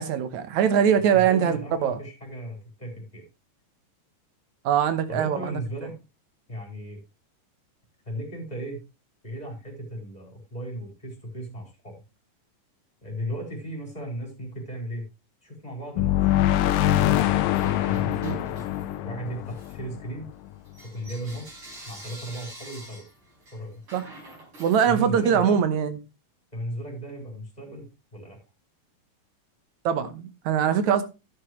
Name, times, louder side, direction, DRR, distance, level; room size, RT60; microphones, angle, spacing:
voice 1, 0.0-2.0 4.6-5.6 18.2-18.4 23.9-24.1 24.6-26.0 29.9-31.0, right 8 dB, 65° right, 2.2 m, -22 dB
voice 2, 1.0-3.2 5.1-5.9 6.5-7.0 8.0-8.8 9.2-11.9 13.0-15.0 15.4-17.2 17.8-18.6 19.0-20.3 20.8-23.0 23.5-23.8 24.8-25.6 26.5-28.4, right 1 dB, 10° left, 4.2 m, -36 dB
sound 1, 16.0-20.6, left 13 dB, 90° left, 2.4 m, -24 dB
Bell / Coin (dropping), 17.5-19.1 19.4-25.4, right 1 dB, 40° right, 5.5 m, -47 dB
11.0 x 9.7 x 3.1 m
omnidirectional pair, 3.8 m